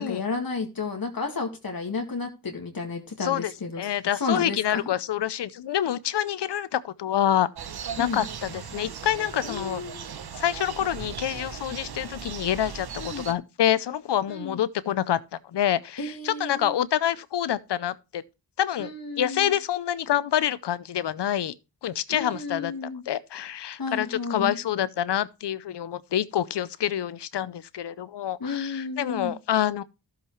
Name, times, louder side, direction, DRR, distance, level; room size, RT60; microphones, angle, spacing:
voice 1, 0.0-3.9 4.1-4.9 8.0-8.3 9.4-10.0 13.0-13.3 14.3-14.6 16.0-16.7 18.8-19.5 22.1-23.0 23.8-24.6 28.4-29.4, left 4 dB, 55° left, 2.0 m, -32 dB
voice 2, 3.2-3.5 3.8-7.5 8.0-9.8 10.4-15.2 15.5-18.2 18.6-18.9 19.2-21.5 21.8-22.7 23.1-29.8, left 11 dB, 80° left, 0.7 m, -27 dB
sound 1, 7.5-13.3, right 7 dB, 65° right, 0.9 m, -38 dB
13.0 x 7.4 x 3.1 m
cardioid pair, 45°, 41 cm